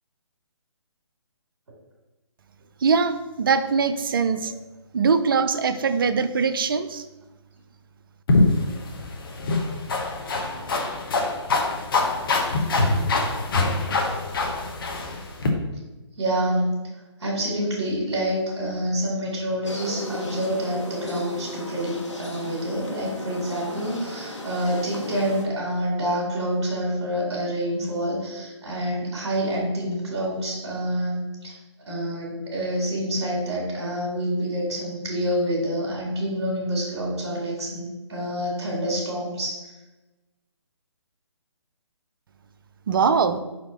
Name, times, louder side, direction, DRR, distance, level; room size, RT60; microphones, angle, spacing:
voice 1, 2.8-4.5 4.9-7.0 42.9-43.4, right 5 dB, 50° right, 12 dB, 0.5 m, -22 dB
sound 1, 8.3-15.5, left 3 dB, 50° left, 1.0 m, -24 dB
voice 2, 16.2-16.8 17.2-31.6 31.9-39.7, equal, 65° right, -3 dB, 2.1 m, -27 dB
sound 2, 19.6-25.4, left 2 dB, 80° left, 1.5 m, -36 dB
5.6 x 4.3 x 4.1 m, 1.1 s
figure-of-eight pair, 140°, 15 cm